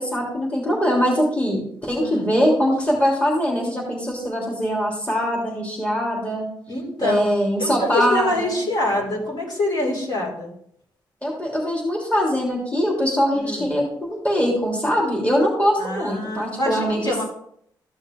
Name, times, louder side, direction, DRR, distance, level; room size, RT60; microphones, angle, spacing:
voice 1, 0.0-6.5 7.0-8.6 11.2-17.2, equal, 15° left, -3 dB, 3.3 m, -22 dB
voice 2, 2.0-2.3 6.7-7.3 7.6-10.5 13.3-13.7 15.8-17.2, left 1 dB, 55° left, -3 dB, 4.8 m, -25 dB
14.0 x 6.3 x 3.6 m, 0.70 s
cardioid pair, 70°, 8 cm